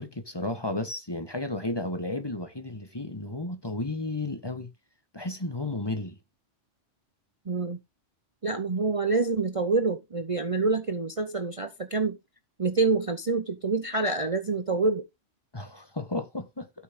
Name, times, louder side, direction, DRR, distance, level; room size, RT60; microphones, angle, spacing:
voice 1, 0.0-4.7 5.1-6.2 15.5-16.7, left 2 dB, 20° left, 1.5 m, -33 dB
voice 2, 7.5-7.8 8.4-12.2 12.6-15.1, right 3 dB, 30° right, 0.8 m, -27 dB
12.0 x 6.2 x 3.8 m
omnidirectional pair, 1.3 m